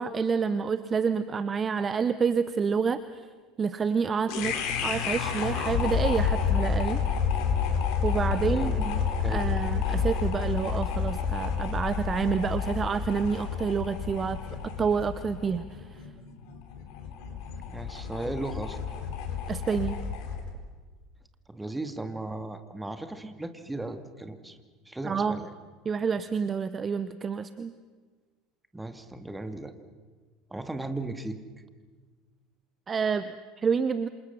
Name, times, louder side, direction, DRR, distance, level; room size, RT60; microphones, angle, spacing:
voice 1, 0.0-3.2 3.6-4.5 4.8-7.0 8.0-14.4 14.8-16.0 19.5-20.0 25.0-25.4 25.8-27.7 32.9-34.1, right 6 dB, 25° right, 13 dB, 0.9 m, -28 dB
sound 1, 4.3-20.5, left 6 dB, 55° left, 3.8 m, -30 dB
voice 2, 8.3-8.8 9.2-9.4 9.9-10.0 17.7-18.9 21.5-24.6 24.9-25.5 28.7-29.7 30.5-31.4, right 2 dB, 10° right, 8 dB, 2.3 m, -36 dB
28.0 x 27.0 x 5.9 m, 1.4 s
figure-of-eight pair, 70°, 0 cm